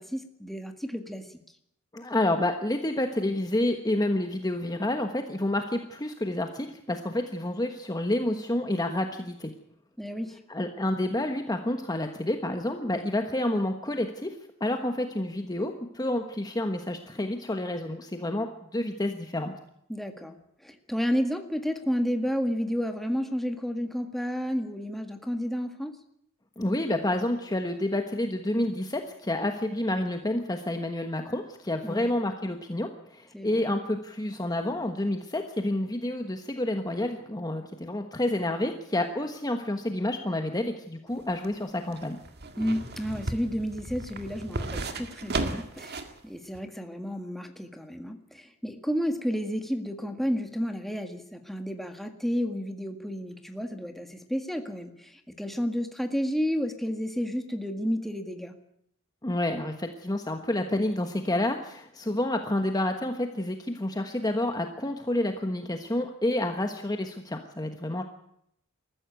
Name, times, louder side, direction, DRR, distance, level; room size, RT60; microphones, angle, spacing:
voice 1, 0.0-1.4 10.0-10.4 19.9-25.9 31.8-32.1 33.3-33.6 42.6-58.5, equal, ahead, 5 dB, 1.8 m, -31 dB
voice 2, 1.9-9.5 10.5-14.3 14.6-19.5 26.6-42.2 59.2-68.0, left 1 dB, 20° left, 5 dB, 1.2 m, -29 dB
sound 1, 41.1-46.2 46.5-46.6, right 2 dB, 50° right, 1.9 m, -35 dB
20.5 x 14.5 x 9.1 m, 0.75 s
head